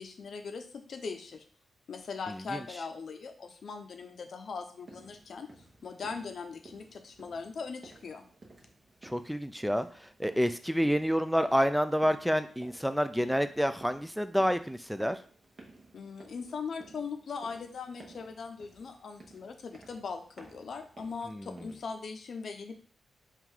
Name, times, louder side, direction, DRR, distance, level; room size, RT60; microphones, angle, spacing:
voice 1, 0.0-1.4 1.9-5.5 5.8-8.2 15.9-22.7, left 5 dB, 70° left, 6 dB, 0.6 m, -40 dB
sound 1, 4.8-22.1, right 2 dB, 50° right, 1.0 m, -55 dB
voice 2, 9.0-15.2 21.2-21.6, equal, ahead, 10 dB, 0.3 m, -28 dB
3.7 x 2.4 x 4.5 m, 0.43 s
cardioid pair, 60°, 0 cm